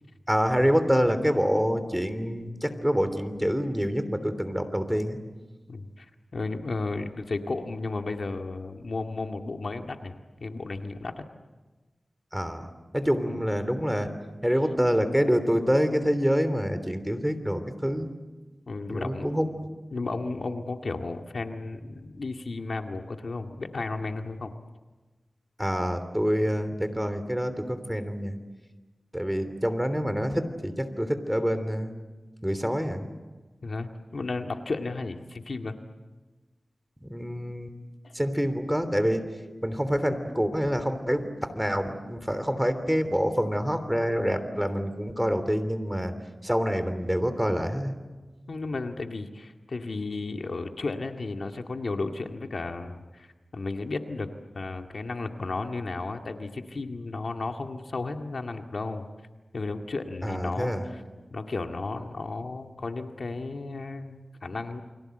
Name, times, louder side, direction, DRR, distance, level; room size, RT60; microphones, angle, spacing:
voice 1, 0.3-5.2 12.3-14.1 14.4-18.1 18.9-19.5 25.6-28.3 29.1-31.9 32.4-33.1 37.0-37.7 38.1-39.2 39.6-46.1 46.4-47.9 60.2-60.8, equal, 5° right, 10 dB, 3.2 m, -26 dB
voice 2, 5.7-6.1 6.3-10.1 10.4-11.2 13.2-13.4 18.7-19.3 19.9-24.5 33.6-35.8 38.0-38.1 48.5-53.3 53.5-54.3 54.5-59.1 59.5-61.0 61.3-64.8, left 3 dB, 70° left, 4 dB, 2.0 m, -33 dB
29.5 x 24.5 x 7.9 m, 1.2 s
wide cardioid pair, 70°, 0 cm